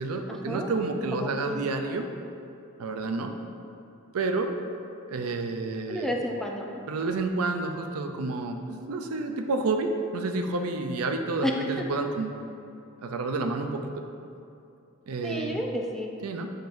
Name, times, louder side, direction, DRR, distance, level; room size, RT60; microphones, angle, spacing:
voice 1, 0.0-2.1 2.8-3.3 4.1-4.5 5.1-6.2 6.9-12.4 13.0-13.8 15.1-15.6 16.2-16.5, right 3 dB, 75° right, 5 dB, 0.5 m, -29 dB
voice 2, 1.1-1.6 5.9-6.8 11.4-11.5 15.2-16.1, equal, ahead, 0 dB, 0.4 m, -31 dB
7.5 x 5.1 x 2.6 m, 2.6 s
head